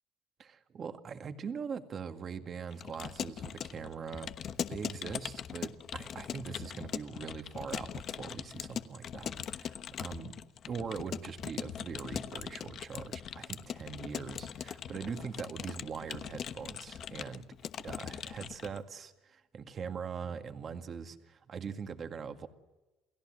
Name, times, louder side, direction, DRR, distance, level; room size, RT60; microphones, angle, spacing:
voice 1, 0.4-10.3 10.7-17.4 17.8-22.5, right 6 dB, 40° right, 7 dB, 1.9 m, -42 dB
Keyboard (musical) / Computer keyboard, 2.7-18.8, left 8 dB, 50° left, 1.1 m, -41 dB
29.0 x 17.5 x 7.7 m, 1.1 s
cardioid pair, 120°, 0 cm